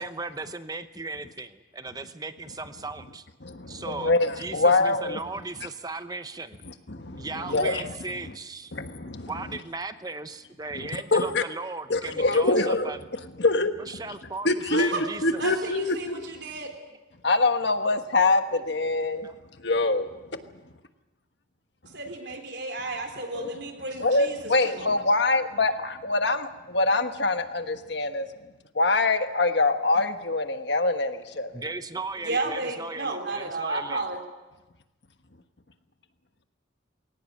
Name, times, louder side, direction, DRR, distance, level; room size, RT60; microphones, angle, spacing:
voice 1, 0.0-3.3 3.7-6.6 7.1-8.7 9.2-13.0 13.8-15.6 18.5-18.6 19.0-19.4 31.5-34.0, right 3 dB, 20° right, 11 dB, 0.8 m, -37 dB
voice 2, 3.4-5.2 6.7-7.9 8.7-9.3 10.7-11.4 11.9-12.9 13.4-13.8 14.4-14.9 15.2-16.3 17.2-19.3 19.6-20.1 23.3-23.5 24.0-28.3 28.7-31.6, left 3 dB, 60° left, 8 dB, 1.3 m, -24 dB
voice 3, 14.7-15.0 15.3-16.8 21.9-24.4 24.6-24.9 32.3-34.2, right 2 dB, 60° right, 4 dB, 3.7 m, -32 dB
21.5 x 18.0 x 8.5 m, 1.1 s
head